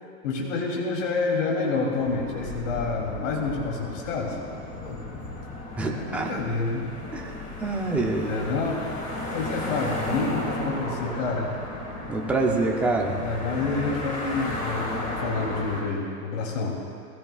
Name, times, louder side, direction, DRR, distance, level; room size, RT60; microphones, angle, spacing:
voice 1, 0.2-4.4 4.8-5.0 5.8-6.9 7.7-7.8 8.3-8.8 9.3-11.5 13.2-16.8, left 3 dB, 60° left, -2 dB, 3.0 m, -28 dB
sound 1, 2.0-15.8, left 1 dB, 20° left, 2.0 m, -34 dB
voice 2, 5.7-6.3 7.1-7.3 7.6-8.6 12.1-13.2, right 3 dB, 5° right, 0 dB, 0.5 m, -26 dB
20.0 x 16.0 x 2.4 m, 2.4 s
supercardioid pair, 150°, 44 cm